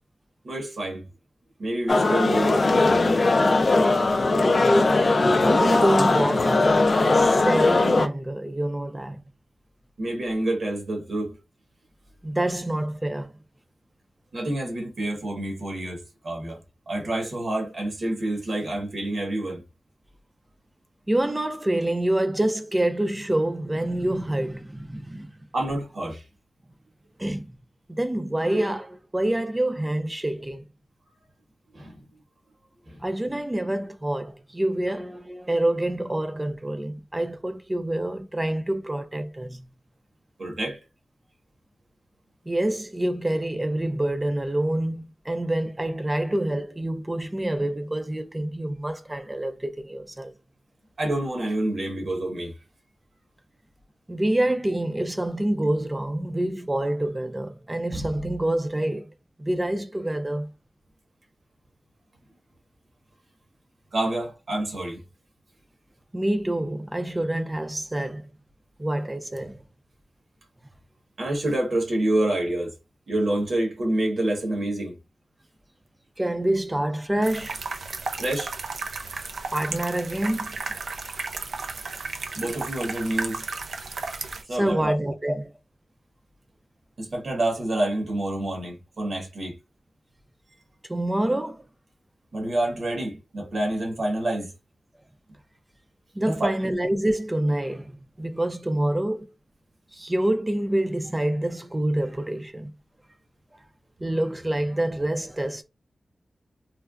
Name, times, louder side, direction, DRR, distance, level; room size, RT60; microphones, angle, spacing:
voice 1, 0.4-1.0 1.6-3.1 10.0-11.4 14.3-16.6 16.9-19.6 25.5-26.2 31.7-32.0 32.9-33.0 40.4-40.8 51.0-52.5 63.9-65.0 71.2-72.7 73.1-75.0 78.2-78.5 82.3-83.4 84.5-85.0 87.0-89.6 92.3-94.5 96.2-96.5, right 1 dB, 65° right, 1.3 m, -27 dB
sound 1, 1.9-8.1, left 2 dB, 50° left, 0.4 m, -19 dB
voice 2, 5.4-9.2 12.2-13.3 21.1-25.3 27.2-27.6 27.9-30.6 33.0-39.7 42.5-50.3 54.1-59.1 59.4-60.5 66.1-68.3 68.8-69.6 76.2-77.5 79.5-80.7 84.6-85.5 90.9-91.6 96.1-99.3 99.9-102.7 104.0-105.6, right 1 dB, 20° right, 0.4 m, -27 dB
sound 2, 77.2-84.4, right 4 dB, 85° right, 0.4 m, -34 dB
3.3 x 2.1 x 2.4 m
wide cardioid pair, 85°, 0 cm